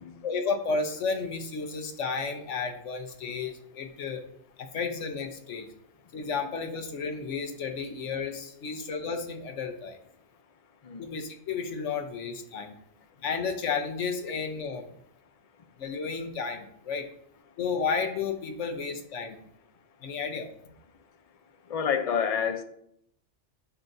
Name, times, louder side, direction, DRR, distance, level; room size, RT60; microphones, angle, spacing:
voice 1, 0.2-4.2 4.6-5.7 6.1-10.0 11.0-12.7 13.2-14.9 15.8-17.1 17.6-19.4 20.0-20.5, left 5 dB, 85° left, 6 dB, 1.2 m, -32 dB
voice 2, 21.7-22.6, left 7 dB, 40° left, 7 dB, 0.6 m, -28 dB
9.8 x 5.7 x 2.7 m, 0.72 s
omnidirectional pair, 1.2 m